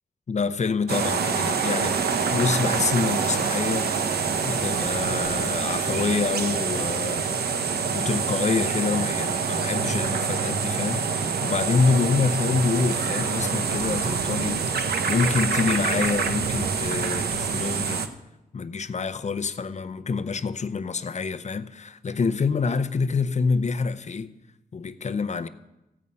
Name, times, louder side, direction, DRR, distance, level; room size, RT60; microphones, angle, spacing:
voice 1, 0.3-2.0 2.3-3.9 4.4-7.3 7.9-18.1 18.5-24.3 24.7-25.5, left 4 dB, 45° left, 0.6 m, -26 dB
sound 1, 0.9-18.1, right 5 dB, 85° right, 0.8 m, -26 dB
15.0 x 5.5 x 8.5 m
cardioid pair, 80°, 16 cm